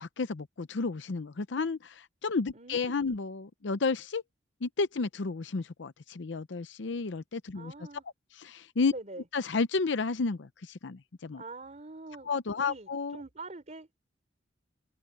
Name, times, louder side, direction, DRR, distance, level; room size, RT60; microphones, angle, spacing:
voice 1, 0.0-4.2 4.6-7.7 8.3-8.9 9.3-11.4 12.2-13.2, left 4 dB, 70° left, 0.6 m, -32 dB
voice 2, 2.5-3.2 7.5-8.0 8.9-9.2 11.4-12.3 12.6-13.9, right 2 dB, 40° right, 3.4 m, -44 dB
head